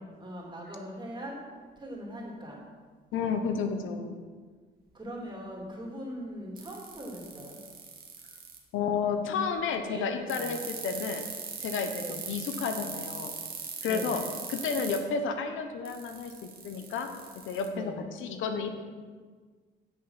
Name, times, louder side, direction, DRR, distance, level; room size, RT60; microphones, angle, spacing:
voice 1, 0.2-1.4 1.8-2.6 4.9-7.6 9.9-10.6 11.9-12.3 13.8-14.3 17.7-18.2, equal, 25° right, -2 dB, 2.9 m, -41 dB
voice 2, 3.1-4.2 8.7-11.3 11.6-13.3 13.8-14.2 14.5-17.1 17.5-18.7, left 5 dB, 85° left, 6 dB, 0.9 m, -31 dB
sound 1, 6.6-8.6 10.3-15.0 15.9-17.7, right 6 dB, 50° right, 1.7 m, -39 dB
8.8 x 6.3 x 5.8 m, 1.5 s
cardioid pair, 90°, 20 cm